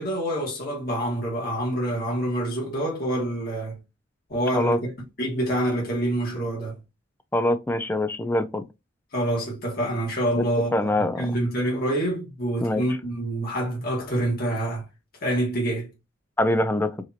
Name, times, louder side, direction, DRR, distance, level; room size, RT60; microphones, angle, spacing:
voice 1, 0.0-3.8 4.3-4.9 5.2-6.8 9.1-14.8 15.2-15.9, right 1 dB, 50° left, 1.7 m, -26 dB
voice 2, 7.3-8.6 10.4-10.5 10.7-11.3 12.6-12.8 16.4-16.9, left 1 dB, 10° left, 0.4 m, -23 dB
4.8 x 2.9 x 2.8 m
head